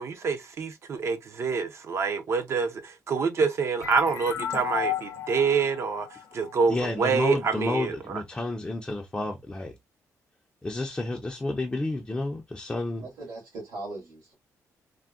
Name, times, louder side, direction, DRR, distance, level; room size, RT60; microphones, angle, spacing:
voice 1, 0.0-6.1 6.3-7.9, right 5 dB, 45° right, 0.5 m, -26 dB
sound 1, 3.8-7.2, left 9 dB, 55° left, 0.6 m, -34 dB
voice 2, 6.7-9.7 10.6-13.1, left 2 dB, 15° left, 0.4 m, -30 dB
voice 3, 13.0-14.3, right 2 dB, 75° right, 1.7 m, -39 dB
3.5 x 2.1 x 2.2 m
cardioid pair, 145°, 6 cm